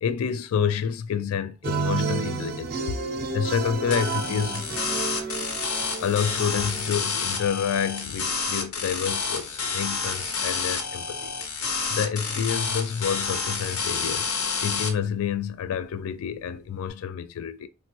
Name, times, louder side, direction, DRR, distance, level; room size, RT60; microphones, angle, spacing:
voice 1, 0.0-3.0 3.3-4.7 6.0-14.3 14.6-17.7, left 7 dB, 70° left, 0.3 m, -28 dB
sound 1, 1.6-6.9, right 4 dB, 45° right, 0.5 m, -31 dB
sound 2, 3.9-14.9, left 5 dB, 90° left, 0.7 m, -29 dB
3.6 x 2.1 x 2.8 m
head